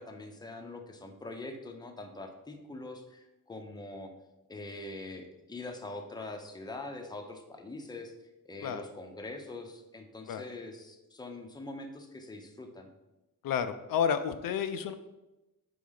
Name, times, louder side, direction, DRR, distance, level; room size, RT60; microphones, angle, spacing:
voice 1, 0.0-4.1 4.5-8.1 8.4-12.9, left 2 dB, 10° left, 4 dB, 0.6 m, -43 dB
voice 2, 13.4-14.9, left 7 dB, 75° left, 10 dB, 0.5 m, -30 dB
4.9 x 3.8 x 5.5 m, 1.0 s
wide cardioid pair, 135°, 34 cm